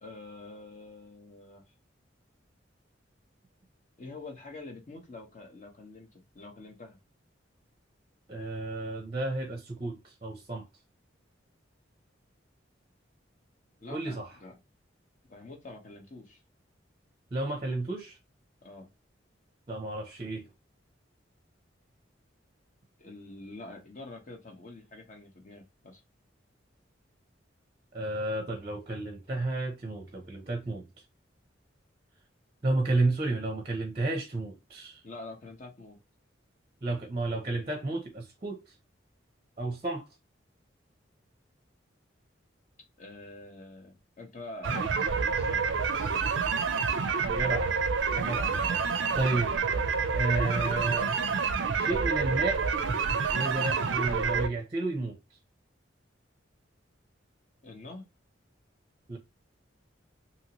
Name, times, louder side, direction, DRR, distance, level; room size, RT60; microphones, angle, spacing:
voice 1, 0.0-1.6 4.0-7.0 13.8-14.5 15.3-16.4 18.6-18.9 23.0-26.0 35.0-36.0 43.0-45.6 45.9-46.2 48.5-48.9 57.6-58.1, left 2 dB, 40° left, 0.9 m, -46 dB
voice 2, 8.3-10.6 13.9-14.3 17.3-18.2 19.7-20.5 27.9-31.0 32.6-35.0 36.8-38.7 39.6-40.1 47.2-47.7 48.1-48.5 49.1-49.5 50.1-51.1 51.7-52.6 53.3-55.4 59.1-59.2, right 2 dB, 30° right, 0.6 m, -32 dB
sound 1, 44.6-54.5, right 5 dB, 75° right, 0.4 m, -28 dB
2.9 x 2.7 x 2.9 m
head